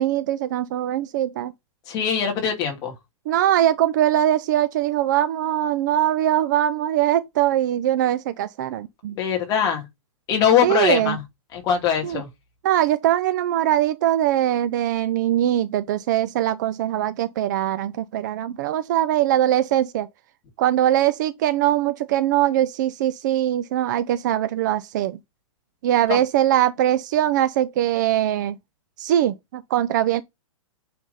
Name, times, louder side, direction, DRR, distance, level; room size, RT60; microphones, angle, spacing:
voice 1, 0.0-1.5 3.3-9.2 10.6-11.2 12.0-12.2 12.6-20.1 20.6-25.2 25.8-28.6 29.0-30.2, right 12 dB, 35° right, 0.6 m, -21 dB
voice 2, 1.9-2.9 9.2-9.9 10.3-11.2 11.5-12.3 26.1-26.2, left 8 dB, 20° left, 2.5 m, -21 dB
9.2 x 3.6 x 5.5 m
hypercardioid pair, 165°, 18 cm